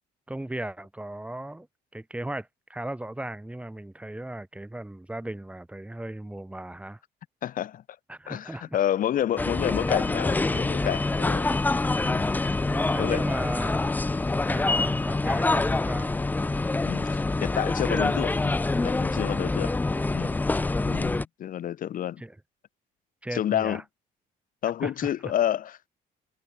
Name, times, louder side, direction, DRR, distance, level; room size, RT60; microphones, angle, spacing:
voice 1, 0.3-1.7 1.9-7.0 8.1-8.8 11.2-11.6 12.6-14.0 14.4-16.1 19.6-20.7 22.2-22.3 23.2-23.8 24.8-25.1, right 1 dB, 5° right, 3.1 m, -36 dB
voice 2, 7.4-7.8 8.3-11.5 12.0-12.4 13.0-13.2 16.8-19.7 20.1-20.3 20.8-22.2 23.3-23.8 24.6-25.9, left 11 dB, 55° left, 1.4 m, -29 dB
sound 1, 9.4-21.3, left 3 dB, 10° left, 0.4 m, -26 dB
cardioid pair, 110°, 17 cm